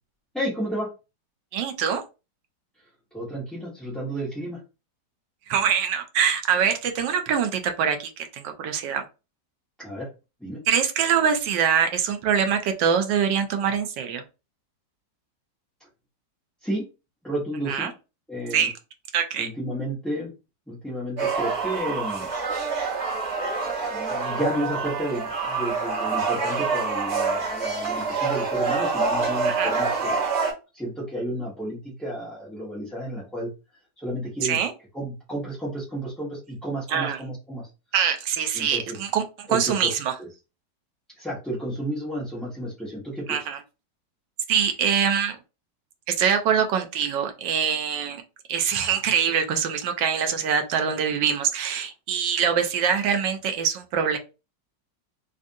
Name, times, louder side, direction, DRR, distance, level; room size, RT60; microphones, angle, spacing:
voice 1, 0.3-0.9 3.1-4.6 9.8-10.1 10.4-10.6 16.6-16.8 17.2-17.9 18.3-18.7 19.4-20.3 20.7-22.3 23.9-30.3 30.7-33.5 34.0-34.6 34.9-37.7 38.5-39.0 39.5-39.9 40.2-40.3 41.2-43.4, right 1 dB, ahead, -10 dB, 0.9 m, -32 dB
voice 2, 1.5-2.0 5.5-9.0 10.7-14.2 17.7-17.9 18.5-18.7 19.1-19.5 29.4-29.7 34.4-34.7 36.9-37.2 37.9-40.1 43.3-43.6 44.5-45.4 46.2-48.2 48.5-54.2, right 7 dB, 85° right, 6 dB, 1.3 m, -24 dB
sound 1, 21.2-30.5, right 4 dB, 35° right, 1.3 m, -26 dB
3.4 x 2.5 x 2.6 m, 0.29 s
omnidirectional pair, 1.9 m